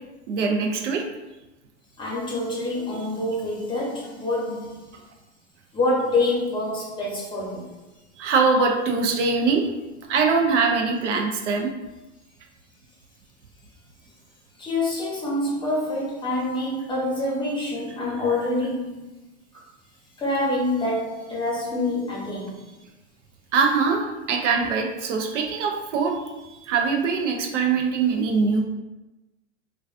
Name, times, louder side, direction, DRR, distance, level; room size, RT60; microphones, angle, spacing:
voice 1, 0.3-1.0 8.2-9.7 10.1-11.7 23.5-26.2 26.7-28.6, right 4 dB, 90° right, 2 dB, 0.5 m, -22 dB
voice 2, 2.0-4.8 5.7-7.7 14.6-19.0 20.2-22.6, left 2 dB, 15° left, -5 dB, 0.8 m, -26 dB
2.3 x 2.3 x 2.4 m, 1.1 s
hypercardioid pair, 110°, 35 cm